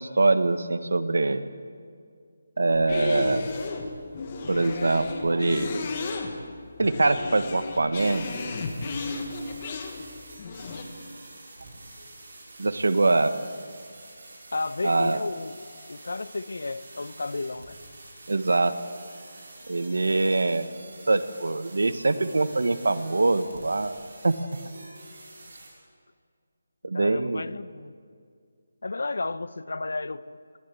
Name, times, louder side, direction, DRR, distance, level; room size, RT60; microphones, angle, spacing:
voice 1, 0.0-1.4 2.6-3.4 4.5-5.8 6.8-8.3 12.6-13.3 14.8-15.2 18.3-18.7 19.7-20.7 21.1-23.9 24.2-24.4 26.8-27.4, right 2 dB, 85° right, 12 dB, 1.4 m, -23 dB
sound 1, 2.7-10.8, left 3 dB, 20° left, 1.5 m, -34 dB
sound 2, 8.0-25.7, right 2 dB, 45° right, 6.1 m, -47 dB
voice 2, 14.5-17.8 26.9-27.9 28.8-30.6, left 3 dB, 70° left, 16 dB, 0.8 m, -33 dB
21.0 x 15.5 x 8.5 m, 2.2 s
hypercardioid pair, 180°, 0 cm